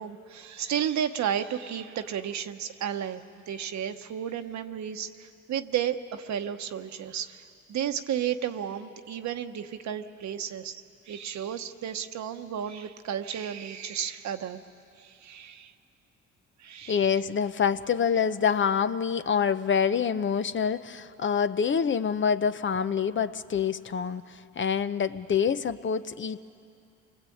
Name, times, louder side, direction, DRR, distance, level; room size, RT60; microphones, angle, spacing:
voice 1, 0.0-7.4 7.7-14.6 15.0-15.7 16.6-17.1, right 9 dB, 65° right, 7 dB, 1.1 m, -33 dB
voice 2, 16.9-26.4, left 7 dB, 40° left, 12 dB, 0.8 m, -26 dB
28.0 x 20.0 x 8.6 m, 2.5 s
cardioid pair, 90°, 30 cm